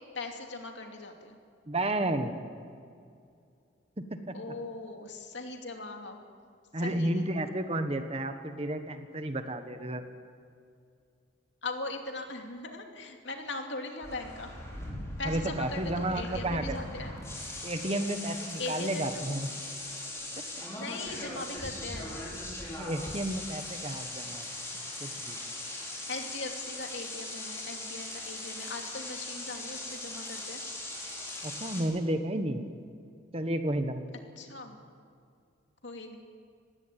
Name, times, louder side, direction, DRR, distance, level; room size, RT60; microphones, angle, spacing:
voice 1, 0.1-1.4 4.3-6.2 6.8-7.3 11.6-14.5 15.2-17.1 18.6-19.4 20.7-22.3 25.8-30.6 34.4-34.8 35.8-36.2, left 2 dB, 65° left, 3 dB, 2.7 m, -40 dB
voice 2, 1.7-2.3 4.0-4.4 6.7-10.0 15.2-16.8 17.6-19.5 22.8-24.4 25.0-25.4 31.4-32.7 33.3-34.0, right 1 dB, 30° right, 8 dB, 1.3 m, -32 dB
sound 1, 14.0-31.8, left 1 dB, 15° left, 4.9 m, -40 dB
19.5 x 17.0 x 9.3 m, 2.3 s
head